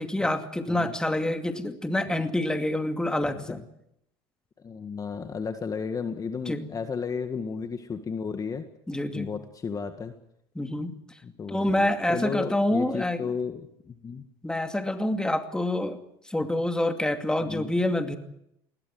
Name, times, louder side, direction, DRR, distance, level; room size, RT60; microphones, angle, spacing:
voice 1, 0.0-3.6 6.5-6.7 8.9-9.3 10.5-10.9 11.5-13.3 14.4-16.0 16.3-18.2, left 1 dB, 5° left, 6 dB, 2.5 m, -27 dB
voice 2, 3.2-3.6 4.6-8.6 9.1-10.1 11.2-14.2 17.4-17.7, left 5 dB, 30° left, 7 dB, 1.8 m, -33 dB
21.0 x 17.0 x 9.4 m, 0.79 s
supercardioid pair, 105°, 13 cm